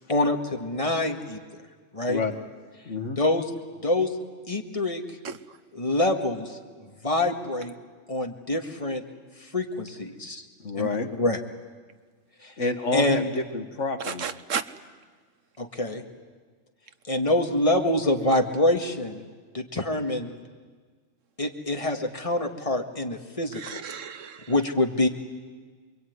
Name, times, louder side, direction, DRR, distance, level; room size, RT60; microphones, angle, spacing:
voice 1, 0.1-1.6 1.9-2.2 3.2-3.5 3.8-4.2 4.5-5.0 5.7-7.7 8.1-9.0 9.4-10.5 10.8-10.9 11.2-11.4 12.4-12.5 12.9-13.3 15.6-16.0 17.1-19.2 19.5-20.3 21.4-23.8 24.5-25.1, left 1 dB, 25° left, 4 dB, 2.0 m, -26 dB
voice 2, 2.1-2.4 2.9-3.2 10.6-11.1 12.6-14.3, left 3 dB, 70° left, 7 dB, 2.0 m, -29 dB
voice 3, 14.0-14.6 23.6-24.5, right 7 dB, 75° right, 11 dB, 1.4 m, -32 dB
28.0 x 22.5 x 9.5 m, 1.5 s
omnidirectional pair, 1.3 m